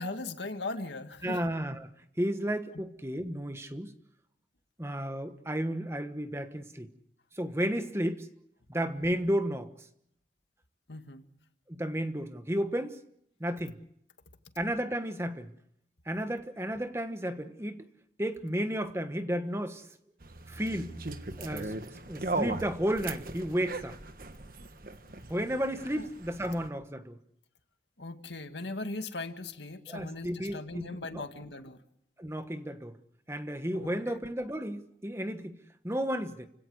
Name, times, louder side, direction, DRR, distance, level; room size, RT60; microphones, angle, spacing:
voice 1, 0.0-1.4 2.7-2.8 10.9-11.2 26.0-26.1 28.0-31.8 33.7-34.2, left 2 dB, 90° left, 2.1 m, -39 dB
voice 2, 1.2-1.9 2.2-3.9 4.8-6.9 7.3-8.3 8.7-9.7 11.7-13.0 13.4-13.8 14.6-15.5 16.1-17.9 18.2-19.9 20.5-20.9 21.4-21.7 22.1-24.0 25.3-27.2 29.9-31.2 32.2-32.9 33.3-35.6 35.8-36.5, equal, 15° right, 1.3 m, -33 dB
sound 1, 20.2-26.7, right 2 dB, 50° right, 1.4 m, -38 dB
29.5 x 17.0 x 8.0 m
head